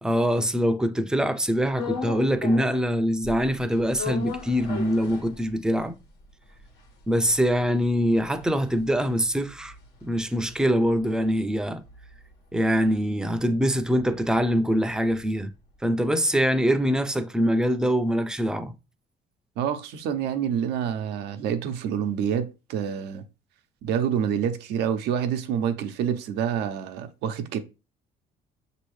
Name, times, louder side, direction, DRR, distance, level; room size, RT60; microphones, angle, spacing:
voice 1, 0.0-6.0 7.1-9.7 10.0-11.8 12.5-15.5 15.8-18.7, equal, 5° right, 0.4 m, -24 dB
sound 1, 1.7-2.9 3.2-5.8 6.2-6.3 6.5-11.0 11.3-15.4, left 5 dB, 90° left, 1.3 m, -38 dB
voice 2, 19.6-23.2 23.8-27.6, right 8 dB, 80° right, 0.6 m, -27 dB
6.1 x 2.8 x 3.1 m
cardioid pair, 110°, 17 cm